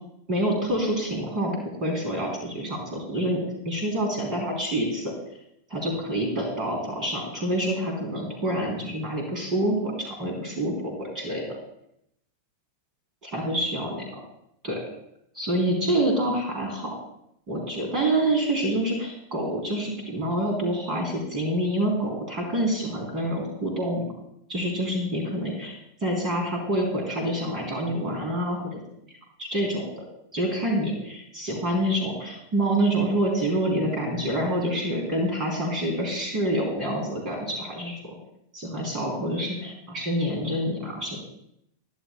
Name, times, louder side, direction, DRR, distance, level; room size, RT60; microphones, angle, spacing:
voice 1, 0.3-5.1 5.7-11.4 13.2-14.2 14.6-14.8 15.4-16.9 17.5-24.1 24.5-28.8 29.4-30.0 30.3-38.1 38.5-41.2, right 1 dB, 30° right, 0 dB, 3.5 m, -27 dB
20.0 x 11.0 x 2.3 m, 0.77 s
figure-of-eight pair, 90°, 0 cm